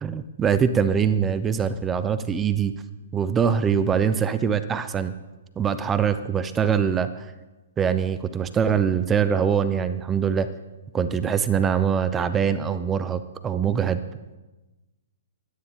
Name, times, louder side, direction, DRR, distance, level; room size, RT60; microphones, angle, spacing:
voice 1, 0.0-2.7 3.1-5.1 5.6-7.3 7.8-10.5 10.9-14.0, right 7 dB, 15° right, 13 dB, 0.6 m, -23 dB
22.5 x 10.0 x 3.8 m, 1.1 s
figure-of-eight pair, 120°, 0 cm